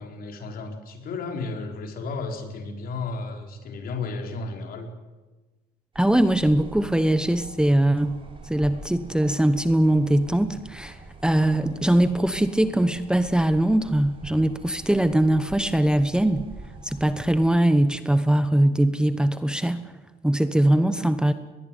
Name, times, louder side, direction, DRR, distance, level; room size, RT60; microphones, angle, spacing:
voice 1, 0.0-4.9, left 3 dB, 60° left, 4 dB, 4.7 m, -33 dB
voice 2, 5.9-8.2 8.4-16.4 16.8-19.8 20.2-21.3, right 1 dB, 5° right, 11 dB, 1.1 m, -21 dB
sound 1, 5.9-17.4, right 3 dB, 30° right, 6.3 m, -44 dB
22.0 x 20.5 x 9.2 m, 1.2 s
cardioid pair, 110°, 17 cm